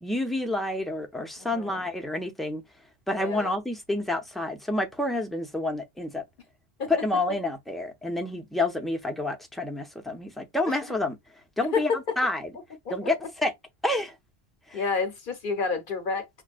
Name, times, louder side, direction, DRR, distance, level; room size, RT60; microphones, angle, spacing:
voice 1, 0.0-2.6 3.1-6.2 6.9-11.2 11.6-12.5 12.9-13.5 13.8-14.1 14.7-14.8, left 2 dB, ahead, 0.4 m, -29 dB
voice 2, 1.4-1.8 3.1-3.5 6.8-6.9 10.7-10.8 11.7-12.2 12.9-13.0 14.7-16.3, left 5 dB, 55° left, 0.9 m, -29 dB
6.2 x 2.2 x 2.4 m
omnidirectional pair, 1.1 m